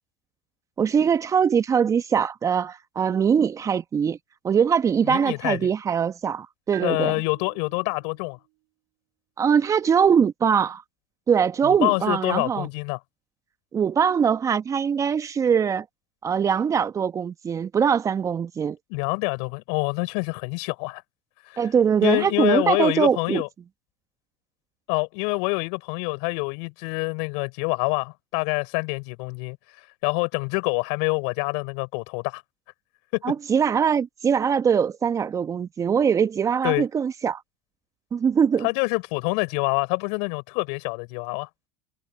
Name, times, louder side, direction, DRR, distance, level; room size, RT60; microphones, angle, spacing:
voice 1, 0.8-4.2 4.4-7.2 9.4-10.8 11.3-12.7 13.7-15.8 16.2-18.8 21.6-23.4 33.2-37.4 38.1-38.7, right 7 dB, 25° right, 1.2 m, -22 dB
voice 2, 5.1-5.7 6.8-8.4 11.6-13.0 18.9-21.0 21.5-21.6 22.0-23.5 24.9-29.6 30.0-32.4 33.1-33.3 36.6-36.8 38.6-41.5, left 38 dB, 60° left, 6.5 m, -26 dB
Bell, 6.7-8.3, right 33 dB, 65° right, 5.8 m, -45 dB
hypercardioid pair, 95°, 12 cm